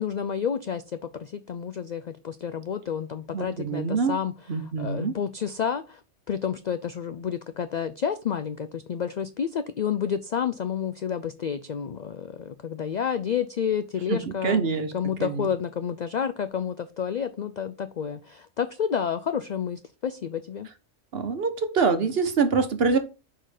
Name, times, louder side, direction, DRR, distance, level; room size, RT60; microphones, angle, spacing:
voice 1, 0.0-4.3 4.8-6.0 6.3-14.6 14.9-20.7, left 7 dB, 85° left, 0.3 m, -30 dB
voice 2, 3.3-4.1 4.5-5.1 14.1-14.9 15.2-15.5 21.1-23.0, right 5 dB, 55° right, 1.2 m, -25 dB
6.4 x 3.9 x 4.9 m
omnidirectional pair, 1.3 m